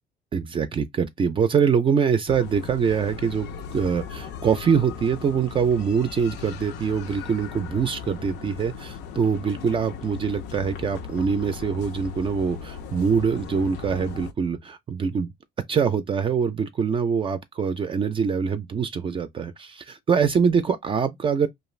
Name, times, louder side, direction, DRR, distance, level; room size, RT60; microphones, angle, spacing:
voice 1, 0.3-3.5 3.7-15.3 15.7-21.5, right 6 dB, 30° right, 0.4 m, -24 dB
sound 1, 2.3-14.3, left 7 dB, 85° left, 0.5 m, -38 dB
2.4 x 2.3 x 3.1 m
cardioid pair, 110°, 17 cm